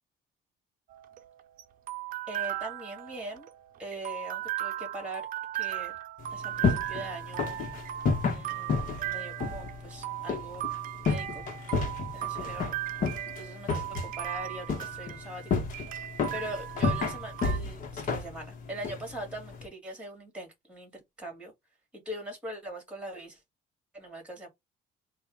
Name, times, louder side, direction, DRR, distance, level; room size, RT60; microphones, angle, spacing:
sound 1, 0.9-17.6, right 15 dB, 55° right, 0.5 m, -37 dB
voice 1, 2.3-3.5 3.8-5.2 5.5-6.0 6.3-7.7 8.3-10.7 11.1-11.4 12.1-12.7 13.4-15.5 16.3-21.5 21.9-23.4 23.9-24.5, right 1 dB, 5° right, 2.7 m, -41 dB
sound 2, 6.2-19.7, left 4 dB, 50° left, 1.2 m, -32 dB
4.1 x 2.5 x 3.6 m
cardioid pair, 110°, 17 cm